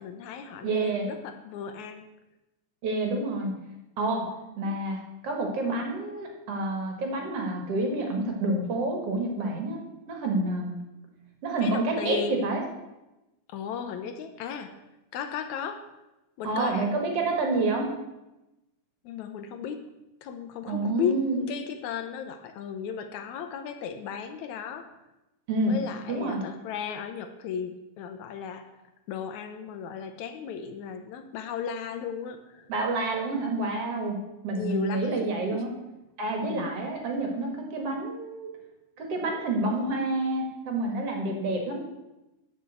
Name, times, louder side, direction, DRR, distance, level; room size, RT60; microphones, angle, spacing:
voice 1, 0.0-2.1 4.1-4.3 11.6-12.5 13.5-14.7 15.1-15.8 16.4-16.9 19.1-19.8 20.2-24.9 25.7-28.7 29.1-32.7 34.5-35.2 35.5-35.6 36.4-36.7, left 7 dB, 75° left, 8 dB, 1.9 m, -35 dB
voice 2, 0.6-1.1 2.8-3.5 4.0-4.3 4.6-10.8 11.4-12.6 16.4-17.9 20.7-21.4 25.5-25.8 26.1-26.4 32.7-34.2 34.4-35.7 36.2-38.5 39.0-41.8, right 2 dB, 55° right, 2 dB, 2.3 m, -28 dB
9.9 x 5.2 x 7.9 m, 0.99 s
omnidirectional pair, 3.7 m